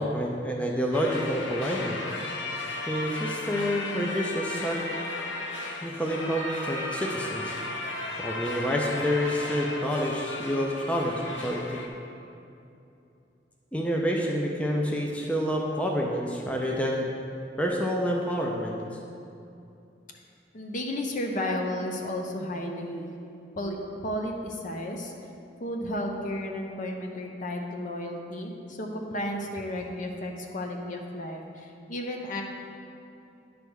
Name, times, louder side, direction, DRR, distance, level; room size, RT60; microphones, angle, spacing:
voice 1, 0.0-2.0 2.9-4.8 5.8-7.5 8.2-11.8 13.7-17.0 17.6-18.8, equal, 5° left, -1 dB, 0.5 m, -28 dB
sound 1, 0.9-11.9, left 2 dB, 85° left, 0.8 m, -35 dB
voice 2, 20.5-23.1 23.6-23.8 24.0-25.1 25.6-32.4, left 1 dB, 45° left, 2 dB, 0.8 m, -33 dB
9.8 x 3.5 x 6.2 m, 2.7 s
head